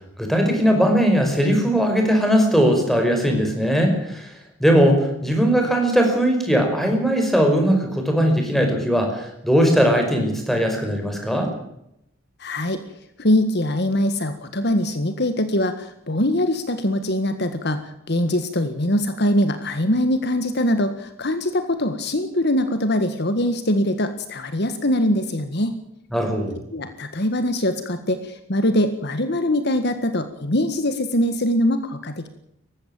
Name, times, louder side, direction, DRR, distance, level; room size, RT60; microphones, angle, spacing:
voice 1, 0.2-4.3 4.6-11.5 26.1-26.6, equal, ahead, 3 dB, 5.4 m, -19 dB
voice 2, 12.4-12.8 13.2-25.7 26.7-32.3, left 1 dB, 55° left, 9 dB, 1.8 m, -22 dB
20.0 x 15.5 x 9.0 m, 0.78 s
head